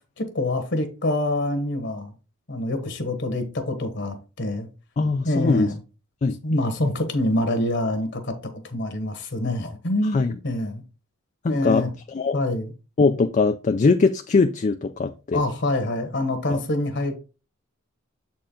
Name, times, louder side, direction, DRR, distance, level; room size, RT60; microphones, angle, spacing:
voice 1, 0.2-2.1 2.5-4.7 5.2-5.8 6.4-10.2 10.4-10.8 11.5-11.9 12.3-12.7 15.3-17.1, left 1 dB, 55° left, 1.2 m, -25 dB
voice 2, 5.0-5.7 6.2-6.4 10.1-10.3 11.4-11.8 12.1-12.4 13.0-15.4 16.5-16.6, left 4 dB, 35° left, 0.3 m, -21 dB
7.4 x 4.4 x 3.7 m
head